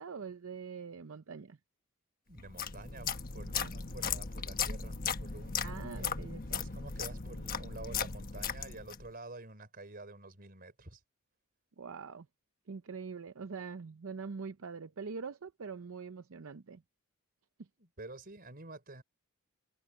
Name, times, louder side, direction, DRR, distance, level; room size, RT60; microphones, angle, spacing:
voice 1, 0.0-1.6 3.5-3.7 5.6-6.6 11.8-12.3 12.7-16.8 17.6-17.7, right 5 dB, 65° right, 0.6 m, -44 dB
voice 2, 2.3-6.3 6.6-11.0 17.8-19.0, right 2 dB, 40° right, 4.3 m, -49 dB
sound 1, 2.4-9.1, left 6 dB, 40° left, 1.3 m, -37 dB
head